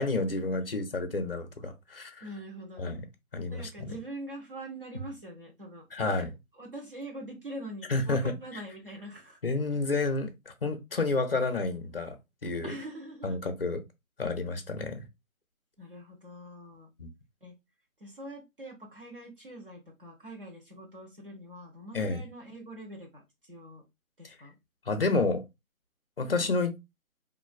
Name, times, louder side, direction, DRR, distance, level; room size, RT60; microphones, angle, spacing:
voice 1, 0.0-2.2 2.8-3.0 3.3-3.9 5.9-6.3 7.9-8.4 9.4-12.2 12.4-12.7 13.2-13.8 14.2-15.0 17.0-17.1 21.9-22.2 24.2-24.3 24.9-25.4 26.2-26.7, left 3 dB, 45° left, 0.5 m, -30 dB
voice 2, 2.2-3.0 3.5-6.3 6.6-9.4 12.6-13.4 15.8-16.9 17.4-17.5 18.0-23.8 24.2-24.5, right 1 dB, 40° right, 0.9 m, -43 dB
3.0 x 2.5 x 2.3 m
figure-of-eight pair, 155°, 42 cm